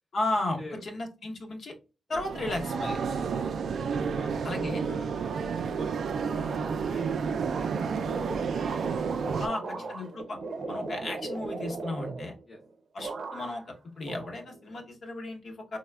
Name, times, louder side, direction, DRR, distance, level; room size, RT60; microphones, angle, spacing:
voice 1, 0.1-1.7 2.1-3.0 4.4-4.8 9.4-10.4 10.7-12.3 12.9-15.8, left 2 dB, 55° left, 1 dB, 0.8 m, -34 dB
sound 1, 2.1-9.5, right 6 dB, 70° right, 0.3 m, -31 dB
voice 2, 3.4-3.7 4.1-8.6 9.7-9.9 12.5-12.6, left 2 dB, 30° left, 1 dB, 0.5 m, -49 dB
sound 2, 7.4-12.7 13.0-13.7 14.0-14.9, right 3 dB, 50° right, 0.7 m, -38 dB
4.1 x 2.1 x 2.2 m, 0.31 s
wide cardioid pair, 140°, 0 cm